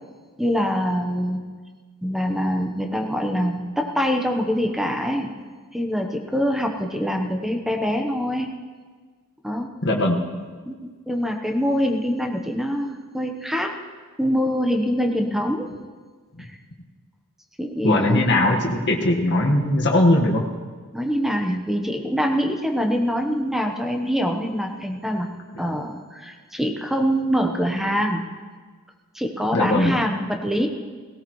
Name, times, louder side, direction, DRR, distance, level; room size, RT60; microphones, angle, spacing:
voice 1, 0.4-1.4 2.0-5.3 5.7-8.5 9.4-9.7 10.7-13.7 14.2-15.7 16.4-16.5 17.6-18.3 20.9-25.3 25.6-28.2 29.1-30.7, equal, ahead, 2 dB, 1.0 m, -24 dB
voice 2, 9.8-10.2 16.3-16.5 17.8-20.4 29.5-30.0, left 1 dB, 50° left, 0 dB, 1.6 m, -20 dB
18.0 x 18.0 x 3.2 m, 1.5 s
head